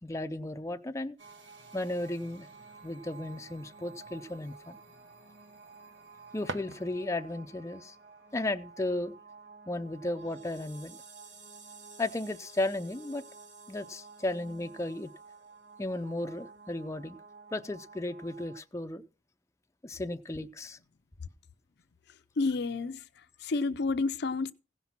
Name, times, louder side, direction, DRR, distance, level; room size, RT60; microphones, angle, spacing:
voice 1, 0.0-1.2 1.7-2.5 2.8-4.8 6.3-8.0 8.3-9.1 9.7-11.0 12.0-13.2 13.7-15.1 15.8-17.2 17.5-19.0 19.8-20.8, left 2 dB, 15° left, 0.5 m, -34 dB
sound 1, 1.2-18.6, right 4 dB, 85° right, 2.1 m, -52 dB
sound 2, 6.0-7.4, right 3 dB, 65° right, 0.9 m, -43 dB
voice 2, 22.4-23.0 23.4-24.5, left 3 dB, 65° left, 0.6 m, -29 dB
16.0 x 5.8 x 5.9 m
head